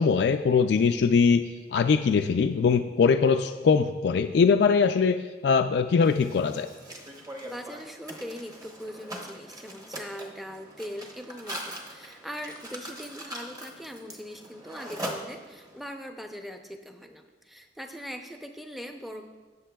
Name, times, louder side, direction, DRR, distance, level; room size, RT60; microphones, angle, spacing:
voice 1, 0.0-1.4 1.7-6.7, left 5 dB, 65° left, 7 dB, 0.3 m, -22 dB
Mechanisms, 6.0-15.8, right 1 dB, 20° right, 0.9 m, -41 dB
voice 2, 7.4-19.2, equal, ahead, 4 dB, 0.5 m, -41 dB
19.0 x 6.5 x 2.3 m, 1.3 s
head